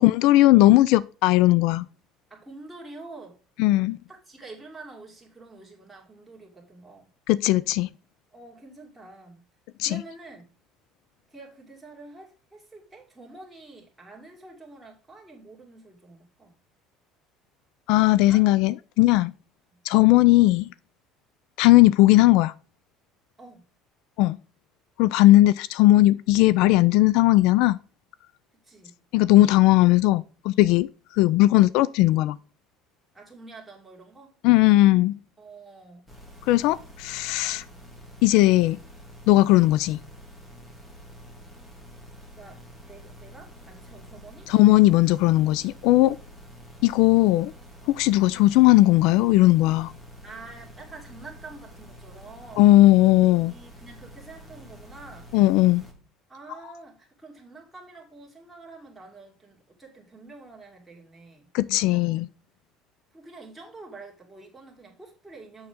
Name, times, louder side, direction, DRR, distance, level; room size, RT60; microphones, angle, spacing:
voice 1, 0.0-1.9 3.6-4.0 7.3-7.9 9.8-10.0 17.9-19.3 19.8-20.7 21.6-22.5 24.2-24.4 25.0-27.8 29.1-30.9 31.1-32.4 34.4-35.1 36.5-37.6 38.2-38.8 39.3-40.0 44.5-46.2 46.8-47.5 47.9-49.9 52.6-53.5 55.3-55.8 61.5-62.3, left 17 dB, 70° left, 0.3 m, -18 dB
voice 2, 2.3-3.4 4.1-7.1 8.3-9.5 9.8-10.5 11.3-16.5 18.3-18.5 19.7-19.8 23.4-23.7 28.6-29.0 33.1-34.4 35.4-36.1 37.5-37.8 42.3-44.5 50.2-52.8 53.2-55.3 56.3-62.3 63.1-65.7, right 3 dB, 5° right, 2.4 m, -47 dB
sound 1, 36.1-55.9, equal, 15° left, 1.8 m, -47 dB
7.0 x 6.3 x 3.5 m
cardioid pair, 135°, 0 cm